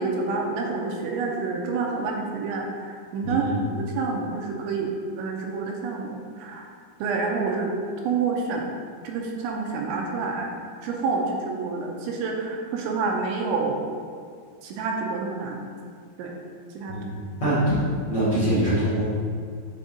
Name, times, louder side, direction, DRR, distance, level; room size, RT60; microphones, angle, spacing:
voice 1, 0.0-3.4 3.7-4.9 5.2-6.6 7.0-7.7 8.0-8.6 9.0-10.5 10.8-13.9 14.6-15.6 16.2-16.3 16.7-17.0, right 4 dB, 85° right, 0 dB, 2.9 m, -28 dB
voice 2, 3.2-3.6 16.9-17.8 18.1-19.0, right 1 dB, 80° left, -12 dB, 1.2 m, -24 dB
7.8 x 4.6 x 3.8 m, 2.1 s
omnidirectional pair, 5.5 m